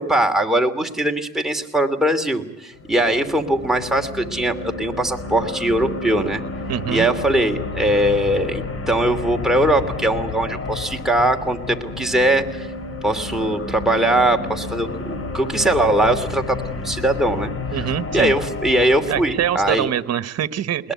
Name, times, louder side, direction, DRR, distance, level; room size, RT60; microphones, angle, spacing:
voice 1, 0.0-6.4 6.9-12.7 13.0-17.5 18.1-19.9, right 1 dB, ahead, 3 dB, 2.8 m, -20 dB
sound 1, 2.7-19.7, left 3 dB, 50° left, 3.3 m, -31 dB
voice 2, 6.7-7.1 17.7-18.3 19.1-20.9, right 10 dB, 55° right, 14 dB, 1.2 m, -24 dB
21.0 x 20.5 x 9.5 m, 0.86 s
cardioid pair, 90°, 30 cm